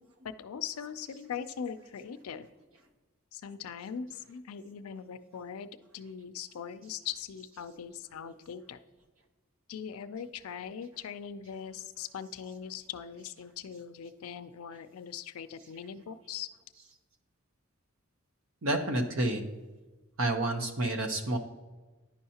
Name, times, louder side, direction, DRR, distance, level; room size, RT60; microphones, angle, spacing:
voice 1, 0.2-2.5 3.3-8.8 9.7-16.5, left 7 dB, 85° left, 12 dB, 0.4 m, -41 dB
voice 2, 18.6-19.4 20.2-21.4, right 1 dB, 70° right, 6 dB, 0.8 m, -29 dB
10.0 x 5.5 x 2.8 m, 1.2 s
head